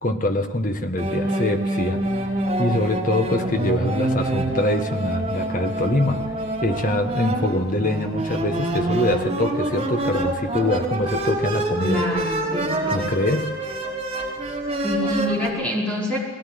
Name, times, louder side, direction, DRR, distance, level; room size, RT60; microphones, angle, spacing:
voice 1, 0.0-2.0 2.6-6.3 6.6-12.0 12.9-13.5, left 1 dB, 40° left, 6 dB, 1.6 m, -24 dB
sound 1, 1.0-15.5, right 1 dB, 25° right, 4.8 m, -26 dB
voice 2, 11.8-13.1 14.8-16.2, equal, 5° left, -4 dB, 5.3 m, -26 dB
20.0 x 18.0 x 9.7 m, 1.5 s
head